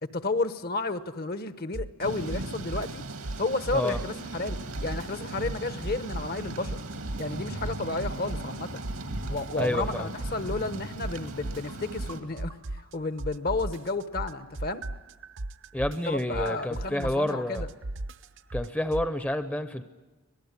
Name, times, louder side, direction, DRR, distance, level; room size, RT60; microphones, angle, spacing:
voice 1, 0.0-3.0 3.4-6.8 7.2-8.8 9.3-12.6 12.9-14.9 16.1-17.7, left 3 dB, 45° left, 12 dB, 1.0 m, -32 dB
sound 1, 1.7-2.0 2.3-4.2 4.5-6.4 6.6-8.6 8.8-12.9 13.2-19.1, right 1 dB, 55° right, 0.8 m, -36 dB
Thunder / Rain, 2.0-12.2, right 2 dB, 90° right, 2.4 m, -38 dB
voice 2, 9.6-10.1 15.7-17.7 18.5-19.8, left 1 dB, 5° left, 10 dB, 0.7 m, -29 dB
25.5 x 18.5 x 9.7 m, 1.2 s
head